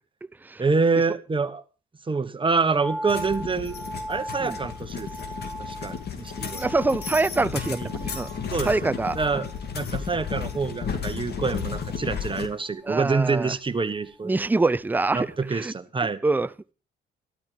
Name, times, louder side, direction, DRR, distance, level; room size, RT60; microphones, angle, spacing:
voice 1, 0.6-1.6 2.1-3.8 4.1-5.1 5.7-6.7 7.7-7.9 8.5-9.5 9.7-14.5 15.1-16.2, right 4 dB, 25° right, 1.4 m, -26 dB
sound 1, 2.8-15.1 15.3-15.4, right 1 dB, 10° left, 2.1 m, -40 dB
sound 2, 3.1-12.5, left 6 dB, 55° left, 2.4 m, -33 dB
voice 2, 6.6-8.3 8.6-9.2 12.8-13.6 14.2-15.7 16.2-16.7, right 3 dB, 10° right, 0.6 m, -25 dB
13.0 x 13.0 x 5.0 m
cardioid pair, 90°, 20 cm